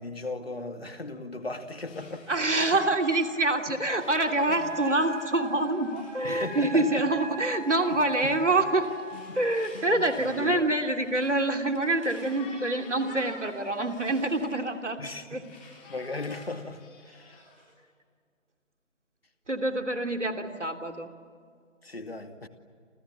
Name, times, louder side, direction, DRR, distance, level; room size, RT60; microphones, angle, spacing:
voice 1, 0.0-2.3 2.6-2.8 4.6-4.7 6.2-7.0 7.9-8.3 9.1-9.4 9.7-10.7 15.0-15.4 15.9-16.8 17.1-17.4 21.8-22.5, left 2 dB, 50° left, 7 dB, 2.4 m, -37 dB
Conversation, 1.9-14.6 15.0-17.7, left 3 dB, 10° left, 3.5 m, -48 dB
voice 2, 2.3-8.9 9.3-15.0 15.3-15.4 19.5-21.1, right 2 dB, 65° right, 5 dB, 3.1 m, -26 dB
Wind instrument woodwind instrument, 4.3-9.2, right 1 dB, 30° right, 4.9 m, -40 dB
29.5 x 28.5 x 7.2 m, 2.1 s
figure-of-eight pair, 160°, 39 cm